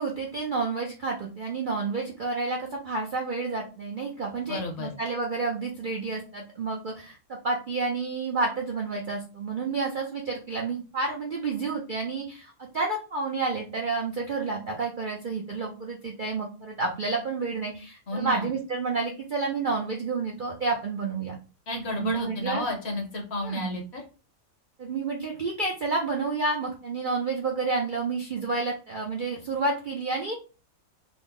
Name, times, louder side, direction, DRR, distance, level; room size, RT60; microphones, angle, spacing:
voice 1, 0.0-21.4 21.9-22.7 23.4-23.7 24.8-30.4, right 3 dB, 55° right, 0 dB, 0.5 m, -30 dB
voice 2, 4.5-4.9 18.1-18.5 21.7-24.0, left 1 dB, 55° left, 2 dB, 1.0 m, -32 dB
3.8 x 2.0 x 3.5 m, 0.34 s
omnidirectional pair, 1.5 m